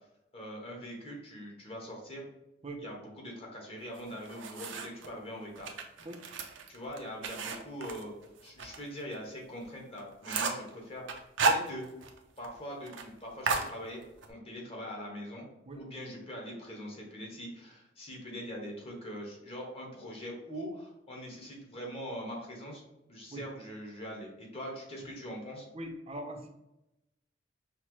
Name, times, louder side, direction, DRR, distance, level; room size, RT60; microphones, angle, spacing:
voice 1, 0.3-2.3 2.8-5.7 6.7-8.1 8.4-11.0 11.4-11.9 12.4-14.0 14.3-15.5 15.8-22.8 23.1-25.6, equal, 35° left, -2 dB, 1.1 m, -42 dB
sound 1, 3.9-5.1 5.6-8.8 9.1-9.2 9.6-9.7 10.0-10.7 11.1-12.2 12.4-12.5 12.8-13.1 13.5-14.3, right 4 dB, 90° right, 0.5 m, -33 dB
voice 2, 25.7-26.5, right 1 dB, 35° right, 4 dB, 0.5 m, -41 dB
5.6 x 2.0 x 3.0 m, 0.88 s
head